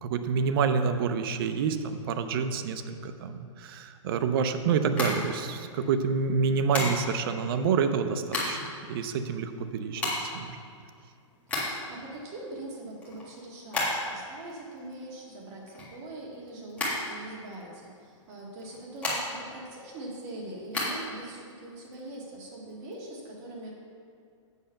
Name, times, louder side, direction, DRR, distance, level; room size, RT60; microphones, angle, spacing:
voice 1, 0.0-8.6 8.9-10.6, right 6 dB, 45° right, 8 dB, 0.6 m, -28 dB
sound 1, 4.8-5.9 6.7-7.3 8.0-8.8 9.1-9.2 9.4-12.0 12.4-14.3 14.6-16.4 16.7-17.7 18.5-19.6 19.9-20.9, left 2 dB, 10° left, 1.7 m, -32 dB
voice 2, 11.6-23.7, right 1 dB, 30° right, -3 dB, 2.1 m, -42 dB
8.1 x 6.4 x 5.7 m, 2.2 s
hypercardioid pair, 160°, 16 cm